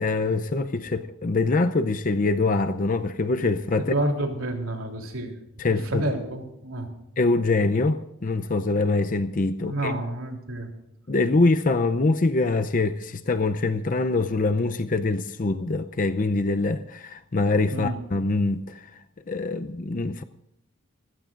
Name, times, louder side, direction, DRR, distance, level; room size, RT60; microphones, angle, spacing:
voice 1, 0.0-3.9 5.6-6.0 7.2-9.9 11.1-18.9 19.3-20.2, left 3 dB, 40° left, 0.6 m, -24 dB
voice 2, 3.8-5.3 5.7-6.9 9.6-10.7 17.7-18.0, right 1 dB, 80° right, 3.3 m, -29 dB
25.5 x 16.5 x 2.5 m
head